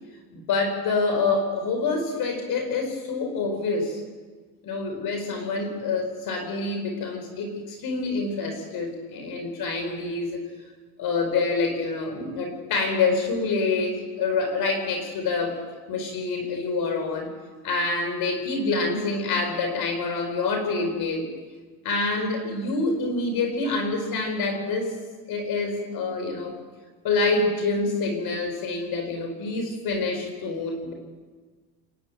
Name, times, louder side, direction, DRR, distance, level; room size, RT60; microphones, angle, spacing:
voice 1, 0.3-4.0 4.6-10.4 11.0-15.6 15.9-17.3 17.6-21.3 21.8-25.0 25.3-26.5 27.0-30.9, left 3 dB, 60° left, 4 dB, 4.3 m, -26 dB
28.0 x 10.5 x 9.1 m, 1.4 s
cardioid pair, 105°, 40 cm